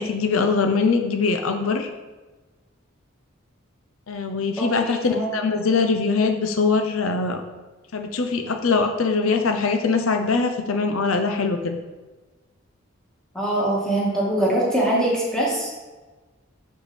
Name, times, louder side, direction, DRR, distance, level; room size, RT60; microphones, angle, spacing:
voice 1, 0.0-1.9 4.1-7.4 7.9-11.8, left 4 dB, 80° left, 6 dB, 0.7 m, -22 dB
voice 2, 4.6-5.3 13.3-15.7, right 1 dB, 5° left, -6 dB, 2.0 m, -23 dB
6.7 x 5.8 x 4.3 m, 1.2 s
head